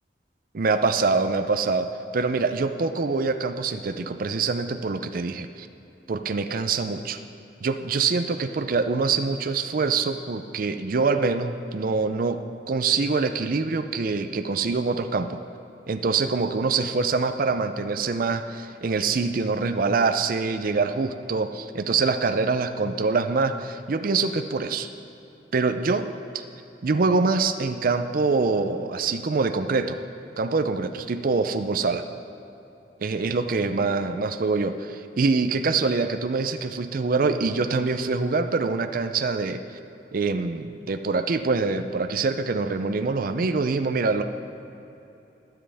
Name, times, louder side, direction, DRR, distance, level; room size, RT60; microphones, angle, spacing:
voice 1, 0.5-5.7 6.1-7.2 7.6-12.4 12.7-15.4 15.9-24.9 25.5-26.1 26.3-26.4 26.8-30.0 30.4-32.1 33.0-39.6 40.1-44.2, right 4 dB, 50° right, 8 dB, 0.5 m, -25 dB
22.0 x 7.6 x 3.4 m, 3.0 s
head